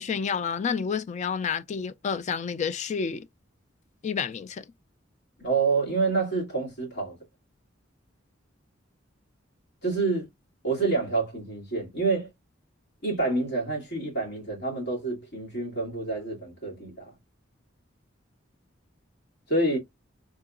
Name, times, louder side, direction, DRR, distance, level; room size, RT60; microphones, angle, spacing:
voice 1, 0.0-3.3 4.0-4.6, left 6 dB, 35° left, 0.3 m, -29 dB
voice 2, 5.4-7.2 9.8-10.3 10.6-12.3 13.0-17.1 19.5-19.8, right 3 dB, 60° left, 2.4 m, -27 dB
3.8 x 2.8 x 2.4 m
head